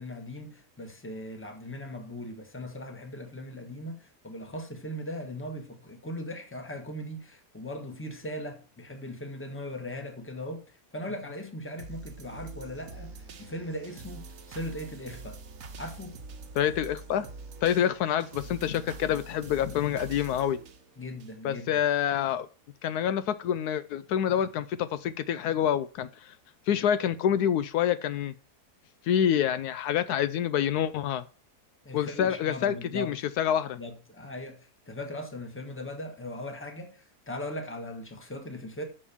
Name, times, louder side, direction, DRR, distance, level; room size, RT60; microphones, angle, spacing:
voice 1, 0.0-15.4 15.8-16.2 21.0-21.7 31.8-33.1 33.8-38.8, left 1 dB, 10° left, 1.3 m, -39 dB
sound 1, 11.8-21.8 22.3-22.4, right 3 dB, 65° right, 1.3 m, -45 dB
voice 2, 16.6-17.3 17.6-20.6 21.4-22.5 22.8-26.1 26.7-28.3 29.1-31.2 31.9-33.8, left 9 dB, 80° left, 1.1 m, -27 dB
6.6 x 5.4 x 6.9 m
omnidirectional pair, 1.7 m